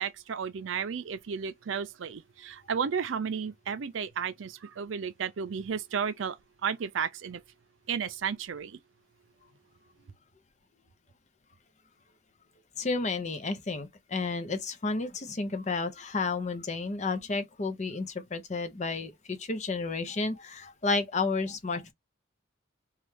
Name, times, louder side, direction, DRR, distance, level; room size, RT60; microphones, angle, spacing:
voice 1, 0.0-6.4 6.6-7.4 7.9-8.8, right 7 dB, 85° right, 0.5 m, -33 dB
voice 2, 12.8-21.9, left 3 dB, 35° left, 0.6 m, -31 dB
3.1 x 2.3 x 3.2 m
head